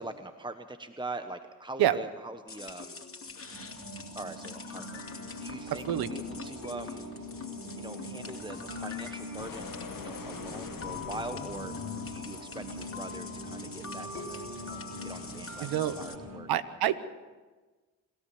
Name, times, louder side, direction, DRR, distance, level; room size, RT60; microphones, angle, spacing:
voice 1, 0.0-3.0 4.1-5.0 5.4-7.1 7.8-11.7 12.1-16.5 16.9-17.0, right 2 dB, 15° right, 9 dB, 1.2 m, -43 dB
sound 1, 2.5-16.2, left 4 dB, 35° left, 2.5 m, -44 dB
sound 2, 3.2-16.4, left 1 dB, 55° right, 4.2 m, -42 dB
sound 3, 5.6-12.5, left 6 dB, 60° left, 1.8 m, -46 dB
voice 2, 15.6-16.0 16.5-17.0, right 12 dB, 85° right, 14 dB, 1.0 m, -26 dB
27.0 x 13.5 x 7.2 m, 1.3 s
supercardioid pair, 45°, 36 cm